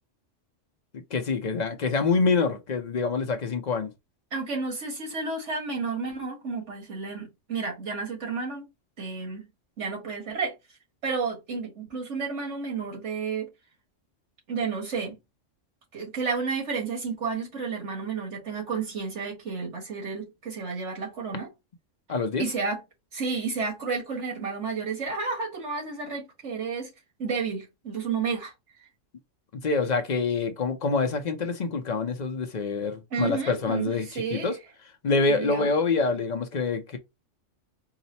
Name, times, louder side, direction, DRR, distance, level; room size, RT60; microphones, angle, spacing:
voice 1, 0.9-3.9 22.1-22.4 29.6-34.6 35.0-37.0, left 4 dB, 45° left, 0.6 m, -26 dB
voice 2, 4.3-8.7 9.0-9.5 9.8-10.5 11.0-13.5 14.5-15.2 15.9-21.5 22.4-22.8 23.1-26.9 27.2-28.5 33.1-34.5 35.3-35.7, right 4 dB, 70° right, 1.8 m, -31 dB
4.8 x 2.0 x 4.0 m
omnidirectional pair, 1.3 m